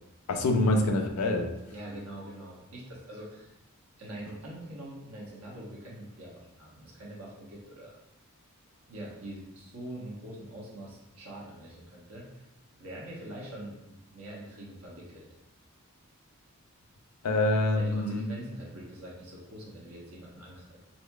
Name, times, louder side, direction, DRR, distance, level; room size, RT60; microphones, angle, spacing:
voice 1, 0.3-1.5 17.2-18.2, left 2 dB, 90° left, 5 dB, 0.5 m, -25 dB
voice 2, 1.7-3.5 4.0-7.9 8.9-12.4 12.8-15.3 17.7-20.8, right 1 dB, 75° right, -4 dB, 1.0 m, -44 dB
4.2 x 2.7 x 2.3 m, 0.89 s
head